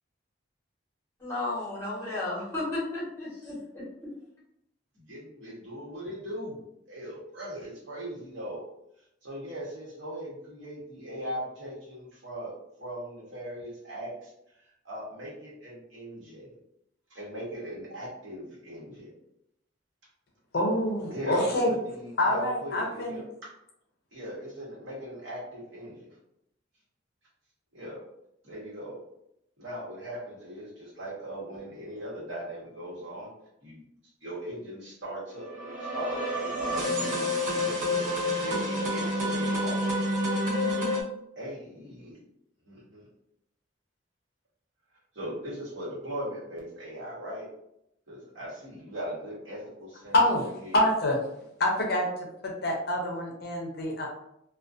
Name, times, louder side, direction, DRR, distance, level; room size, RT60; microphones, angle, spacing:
voice 1, 1.2-3.8, left 2 dB, 15° left, -8 dB, 1.0 m, -33 dB
voice 2, 4.9-6.6 6.9-8.6 9.2-12.5 12.8-14.3 14.6-16.5 17.1-19.1 21.1-23.2 24.1-26.1 27.7-28.0 28.4-29.0 29.6-33.3 33.6-33.8 34.2-39.8 41.4-42.2 42.7-43.1 45.1-47.5 48.1-50.9, equal, 70° right, -5 dB, 1.0 m, -39 dB
voice 3, 20.5-21.7 22.2-23.2 50.1-50.4 50.7-51.2 51.6-54.1, left 1 dB, 50° left, 0 dB, 0.5 m, -26 dB
sound 1, 35.4-41.0, left 1 dB, 40° right, 0.6 m, -28 dB
2.4 x 2.2 x 2.4 m, 0.79 s
head